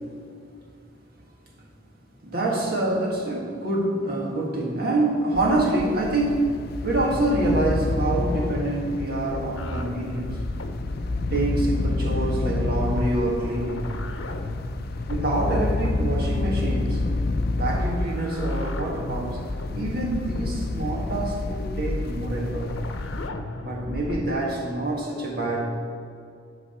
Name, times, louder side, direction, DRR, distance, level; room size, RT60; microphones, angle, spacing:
voice 1, 2.2-10.4 11.3-13.9 15.1-17.0 17.6-19.4 19.7-22.8 23.6-25.8, right 2 dB, 55° right, -2 dB, 1.8 m, -26 dB
sound 1, 5.3-23.3, left 2 dB, 55° left, 0.5 m, -29 dB
sound 2, 9.6-24.4, left 2 dB, 85° left, 0.8 m, -35 dB
11.5 x 3.9 x 7.0 m, 2.4 s
head